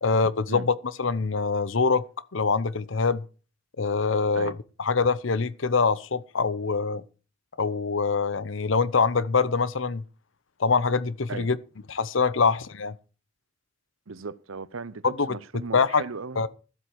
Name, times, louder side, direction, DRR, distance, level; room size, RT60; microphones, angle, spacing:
voice 1, 0.0-2.0 2.3-3.2 3.8-7.0 7.6-10.0 10.6-11.6 11.9-12.9 15.0-15.3 15.7-16.0 16.4-16.5, left 4 dB, 65° left, 0.8 m, -24 dB
voice 2, 14.1-16.4, right 4 dB, 80° right, 0.8 m, -37 dB
13.5 x 8.0 x 6.3 m
head